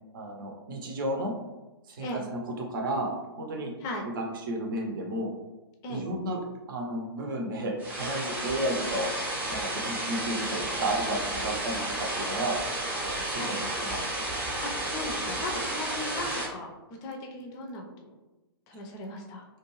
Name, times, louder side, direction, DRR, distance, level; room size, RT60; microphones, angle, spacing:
voice 1, 0.1-1.3 1.9-3.7 4.2-5.3 5.9-6.4 6.7-9.1 9.5-12.6 13.0-14.1, right 1 dB, 55° right, 1 dB, 0.6 m, -32 dB
sound 1, 7.8-16.5, right 1 dB, 15° right, 0.7 m, -32 dB
voice 2, 14.6-18.1 18.7-19.5, left 1 dB, 30° left, 2 dB, 0.5 m, -37 dB
2.5 x 2.2 x 3.0 m, 1.1 s
figure-of-eight pair, 120°, 13 cm